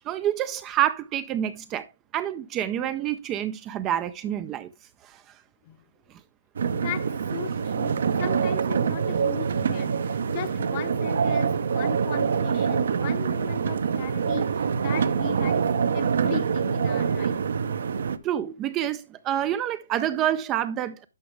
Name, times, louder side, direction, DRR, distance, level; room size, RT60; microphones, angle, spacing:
voice 1, 0.0-1.9 2.1-4.7 5.0-5.2 18.2-21.1, right 11 dB, 15° right, 0.3 m, -27 dB
sound 1, 6.6-18.2, right 6 dB, 60° right, 0.7 m, -25 dB
voice 2, 6.7-15.6 15.9-17.4, left 12 dB, 25° left, 0.7 m, -38 dB
11.0 x 5.9 x 3.3 m
hypercardioid pair, 165°, 0 cm